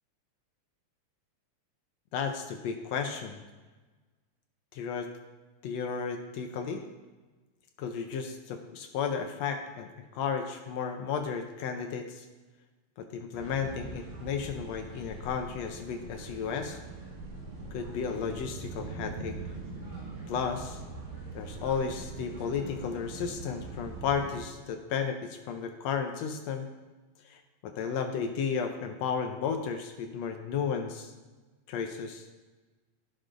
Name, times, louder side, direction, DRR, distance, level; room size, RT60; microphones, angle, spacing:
voice 1, 2.1-3.4 4.7-5.1 5.6-6.8 7.8-9.9 10.1-12.2 13.0-16.8 17.7-19.4 20.3-20.8 21.3-26.7 27.2-31.1 31.7-32.2, left 6 dB, 75° left, 4 dB, 1.7 m, -33 dB
sound 1, 13.3-24.4, right 3 dB, 75° right, 3.1 m, -42 dB
13.5 x 6.2 x 2.5 m, 1.3 s
omnidirectional pair, 3.4 m